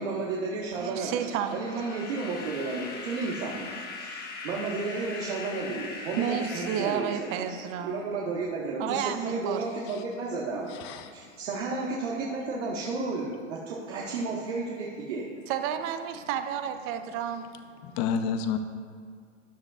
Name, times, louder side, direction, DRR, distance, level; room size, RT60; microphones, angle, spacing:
voice 1, 0.0-1.2 1.5-7.6 7.8-10.7 11.1-15.3, right 3 dB, 70° right, -4 dB, 1.6 m, -32 dB
voice 2, 0.8-1.6 6.2-8.1 8.8-9.6 15.5-17.5, right 9 dB, 35° right, 8 dB, 0.7 m, -31 dB
sound 1, 1.0-8.0, left 4 dB, 25° left, 1.3 m, -41 dB
voice 3, 10.7-11.4 17.8-18.6, left 7 dB, 40° left, 8 dB, 0.8 m, -30 dB
13.0 x 9.8 x 2.4 m, 2.1 s
hypercardioid pair, 125°, 37 cm